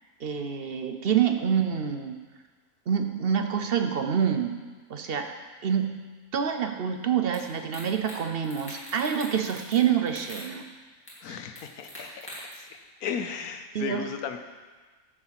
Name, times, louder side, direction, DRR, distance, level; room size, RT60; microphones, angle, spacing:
voice 1, 0.2-2.2 2.9-4.5 4.9-5.3 5.6-5.9 6.3-10.6 13.7-14.0, right 8 dB, 55° right, 6 dB, 0.7 m, -26 dB
sound 1, 7.3-7.4 7.7-8.2 8.4-9.8 10.1-10.5 11.1-11.2 11.6-12.5, equal, 10° left, 2.9 m, -43 dB
voice 2, 11.2-12.1 12.5-14.4, left 7 dB, 75° left, 7 dB, 1.3 m, -35 dB
10.5 x 4.9 x 7.5 m, 1.4 s
omnidirectional pair, 1.6 m